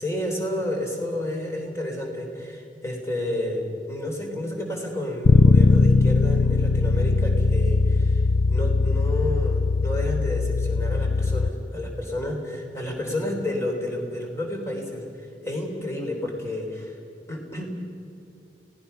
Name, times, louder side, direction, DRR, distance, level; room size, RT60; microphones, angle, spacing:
voice 1, 0.0-8.2 8.5-17.0 17.3-17.6, left 1 dB, 15° left, 1 dB, 3.5 m, -30 dB
Bass guitar, 5.2-11.5, left 3 dB, 65° left, 0.5 m, -20 dB
29.5 x 18.0 x 5.7 m, 2.6 s
head